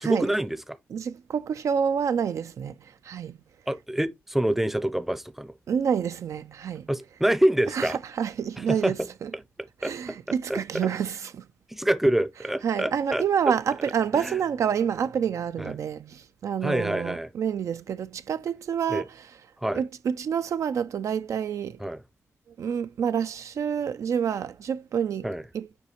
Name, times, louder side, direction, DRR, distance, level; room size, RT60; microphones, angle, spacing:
voice 1, 0.0-0.8 3.7-5.5 6.9-8.0 8.7-8.9 9.8-9.9 10.5-10.6 11.7-13.2 14.1-14.4 15.6-15.7 16.6-17.3 18.9-19.0 19.6-19.8 21.8-22.0 25.2-25.4, right 1 dB, 5° right, 0.5 m, -26 dB
voice 2, 0.9-3.4 5.7-6.9 7.7-9.3 9.8-11.5 12.6-19.3 19.7-21.8 22.6-25.3 25.5-25.7, right 7 dB, 70° right, 0.4 m, -28 dB
6.9 x 4.7 x 2.9 m
cardioid pair, 80°, 5 cm